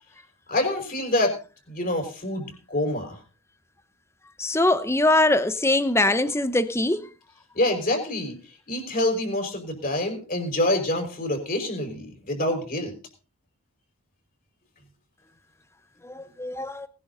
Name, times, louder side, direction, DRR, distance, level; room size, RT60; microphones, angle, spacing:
voice 1, 0.5-1.4 1.7-3.2 7.5-8.4 8.7-12.9, left 1 dB, 40° left, 5.4 m, -26 dB
voice 2, 4.4-7.1 16.0-16.9, left 2 dB, 10° left, 0.9 m, -22 dB
19.5 x 11.0 x 4.0 m
head